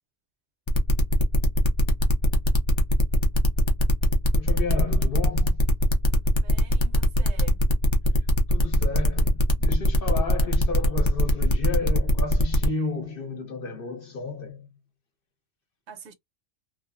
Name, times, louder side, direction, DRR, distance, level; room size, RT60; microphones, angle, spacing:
sound 1, 0.7-12.7, left 2 dB, 35° left, 0.5 m, -22 dB
voice 1, 4.3-5.6 8.5-14.7, left 4 dB, 55° left, 0.9 m, -32 dB
voice 2, 6.4-7.6 15.9-16.1, right 6 dB, 70° right, 0.9 m, -44 dB
3.2 x 2.0 x 2.4 m
omnidirectional pair, 1.2 m